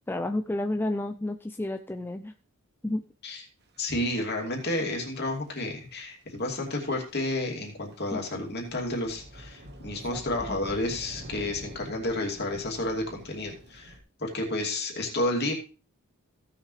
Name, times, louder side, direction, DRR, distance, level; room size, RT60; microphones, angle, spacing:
voice 1, 0.1-2.3 2.8-3.0 10.1-10.2 10.5-10.6, left 1 dB, 10° left, 7 dB, 0.4 m, -31 dB
voice 2, 3.8-13.9 14.2-15.5, left 1 dB, 50° left, 0 dB, 2.7 m, -31 dB
sound 1, 3.8-4.3 4.6-5.5 6.0-6.1 6.3-6.4 6.7-6.8 7.1-7.6 7.9-14.0, equal, 50° right, 1.4 m, -46 dB
16.5 x 6.5 x 3.2 m, 0.35 s
head